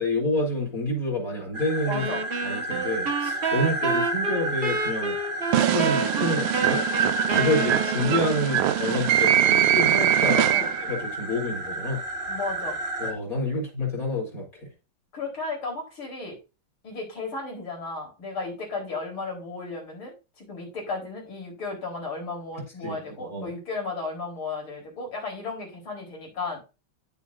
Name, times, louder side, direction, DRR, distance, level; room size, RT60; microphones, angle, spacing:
voice 1, 0.0-2.0 2.4-5.1 5.5-6.9 7.3-10.5 10.9-12.0 13.0-14.7 22.8-23.5, left 1 dB, 40° left, -2 dB, 4.1 m, -28 dB
sound 1, 1.5-13.1, right 1 dB, 35° right, 1.2 m, -31 dB
voice 2, 1.9-2.2 3.5-3.7 8.9-9.0 10.3-10.7 12.3-12.8 15.1-16.4 16.8-26.6, left 3 dB, 75° left, -1 dB, 5.2 m, -34 dB
sound 2, 1.9-8.5, right 4 dB, 70° right, 0.5 m, -30 dB
sound 3, 5.5-11.0, right 12 dB, 85° right, 1.5 m, -23 dB
10.0 x 8.2 x 2.7 m, 0.28 s
omnidirectional pair, 2.3 m